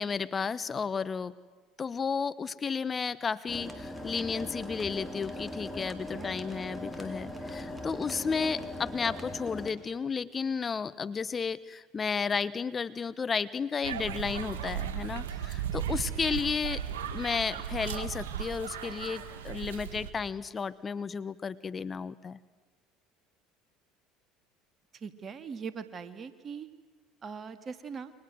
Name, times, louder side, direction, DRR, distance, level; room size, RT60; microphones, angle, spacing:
voice 1, 0.0-1.3 1.8-16.8 17.1-22.4, left 5 dB, 30° left, 15 dB, 1.0 m, -33 dB
sound 1, 3.5-9.7, left 1 dB, ahead, 4.8 m, -40 dB
sound 2, 13.8-20.1, right 9 dB, 80° right, 2.3 m, -36 dB
voice 2, 24.9-26.7 27.2-28.1, right 6 dB, 35° right, 10 dB, 2.5 m, -41 dB
29.0 x 24.5 x 7.9 m, 1.4 s
hypercardioid pair, 70°, 0 cm